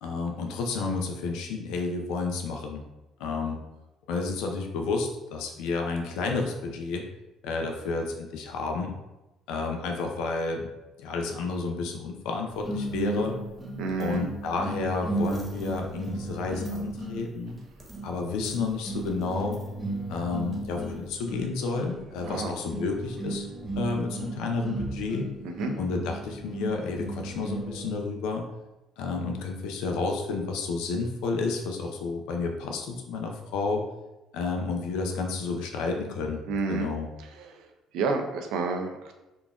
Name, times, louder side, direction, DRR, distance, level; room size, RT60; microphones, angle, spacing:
voice 1, 0.0-2.8 3.2-3.6 4.1-7.0 7.4-8.9 9.5-10.7 11.0-13.4 14.0-17.6 18.0-19.6 20.1-23.5 23.8-25.3 25.8-28.4 29.0-33.8 34.3-36.4 36.7-37.1, left 4 dB, 80° left, 3 dB, 0.5 m, -31 dB
sound 1, 12.6-28.1, right 2 dB, 20° right, 1.0 m, -35 dB
voice 2, 13.8-14.3 22.3-22.5 25.4-25.7 36.5-36.9 37.2-37.7 37.9-39.1, right 4 dB, 75° right, 4 dB, 0.5 m, -30 dB
3.8 x 2.4 x 3.5 m, 1.0 s
supercardioid pair, 75°, 0 cm